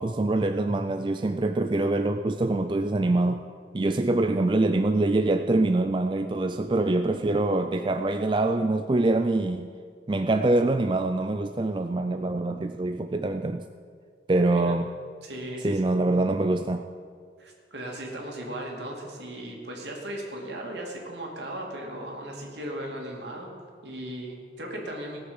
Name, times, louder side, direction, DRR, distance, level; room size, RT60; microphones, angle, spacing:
voice 1, 0.0-3.4 3.7-9.7 10.1-13.6 14.3-14.9 15.6-16.9, right 2 dB, 25° right, 7 dB, 0.4 m, -24 dB
voice 2, 14.5-14.8 15.2-15.9 17.4-23.5 23.8-25.2, right 1 dB, 75° right, 0 dB, 2.7 m, -37 dB
17.5 x 6.8 x 7.1 m, 2.1 s
head